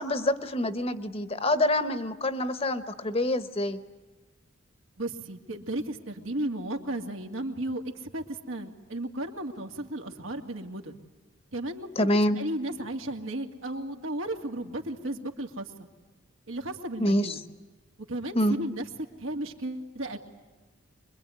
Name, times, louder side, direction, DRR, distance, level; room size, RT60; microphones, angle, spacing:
voice 1, 0.0-3.8 12.0-12.4 17.0-17.4 18.3-18.6, left 1 dB, 30° left, 11 dB, 1.1 m, -26 dB
voice 2, 5.0-7.8 8.1-11.0 11.5-12.1 12.4-15.7 16.5-17.4 18.1-18.8 19.2-20.2, right 1 dB, 85° right, 3 dB, 2.4 m, -34 dB
25.0 x 22.5 x 9.4 m, 1.3 s
head